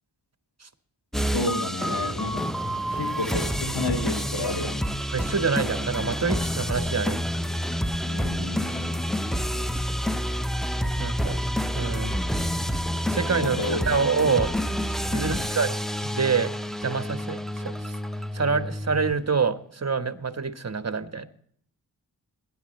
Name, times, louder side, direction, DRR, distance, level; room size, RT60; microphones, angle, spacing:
sound 1, 1.1-19.1, equal, ahead, 0.8 m, -28 dB
voice 1, 1.2-2.5 2.9-4.8 8.0-9.0 13.4-13.8 14.2-14.3 15.1-15.5, left 2 dB, 70° left, 4 dB, 2.3 m, -31 dB
voice 2, 5.1-7.2 11.0-11.4 11.7-12.1 13.1-14.5 15.1-16.5 16.8-17.9 18.3-21.3, right 5 dB, 40° right, 9 dB, 1.3 m, -26 dB
21.5 x 10.0 x 3.2 m, 0.63 s
cardioid pair, 50°, 42 cm